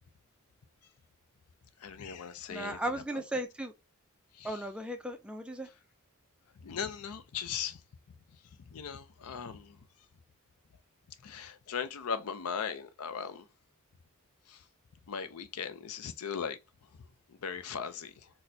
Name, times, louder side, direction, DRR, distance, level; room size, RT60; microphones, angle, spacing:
voice 1, 1.8-3.4 4.3-4.6 6.6-7.8 8.7-9.8 11.2-13.5 14.5-14.6 15.1-16.6 17.3-18.3, left 7 dB, 75° left, 0.5 m, -38 dB
voice 2, 2.5-3.7 4.4-5.7, right 1 dB, 5° right, 0.3 m, -36 dB
4.1 x 2.1 x 2.6 m
head